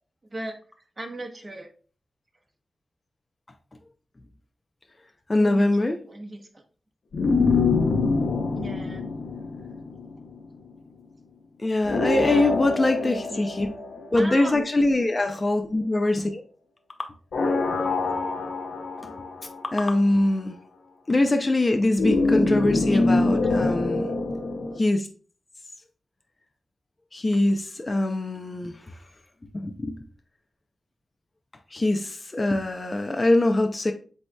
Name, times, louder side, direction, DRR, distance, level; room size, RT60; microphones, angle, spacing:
voice 1, 1.0-1.7 5.4-5.7 6.1-6.6 8.5-9.1 12.1-12.6 13.0-13.7 14.1-14.6 22.9-23.0 23.4-23.7, right 1 dB, 35° right, 1.0 m, -37 dB
voice 2, 5.3-6.0 11.6-13.7 14.1-16.4 19.0-19.1 19.7-20.6 21.1-24.0 24.8-25.1 27.1-28.8 29.5-30.0 31.7-33.9, left 2 dB, 30° left, 0.5 m, -23 dB
sound 1, 7.1-10.5 11.8-14.7 17.3-19.9 22.0-24.8, left 3 dB, 70° left, 0.7 m, -25 dB
7.8 x 2.8 x 2.2 m
cardioid pair, 60°, 0 cm